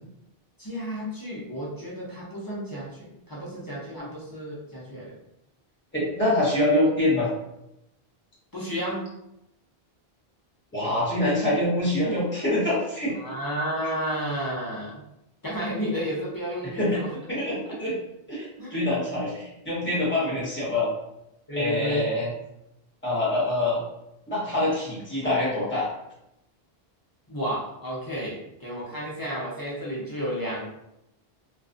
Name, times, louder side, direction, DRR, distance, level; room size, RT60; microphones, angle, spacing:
voice 1, 0.6-5.1 8.5-9.0 13.2-15.0 15.4-17.1 17.6-17.8 18.6-18.8 19.1-19.3 20.2-20.3 21.5-22.1 27.3-30.6, equal, 25° left, -6 dB, 0.5 m, -32 dB
voice 2, 5.9-7.3 10.7-13.1 16.7-17.0 17.3-18.0 18.3-20.9 21.6-22.3 23.0-23.8 24.3-25.9, left 1 dB, 10° left, -8 dB, 1.0 m, -25 dB
2.4 x 2.3 x 2.4 m, 0.85 s
omnidirectional pair, 1.0 m